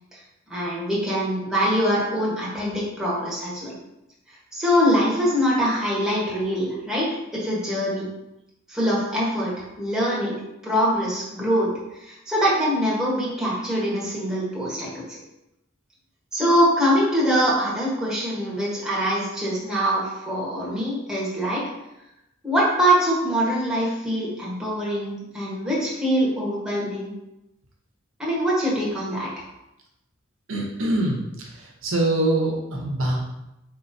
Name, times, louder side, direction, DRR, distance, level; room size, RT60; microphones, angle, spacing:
voice 1, 0.5-3.8 4.5-8.1 8.7-10.4 10.6-15.2 16.3-21.7 22.4-27.1 28.2-29.4, equal, 5° right, -6 dB, 1.1 m, -23 dB
voice 2, 30.5-33.2, right 1 dB, 80° right, -1 dB, 0.9 m, -24 dB
4.5 x 3.7 x 2.7 m, 0.90 s
head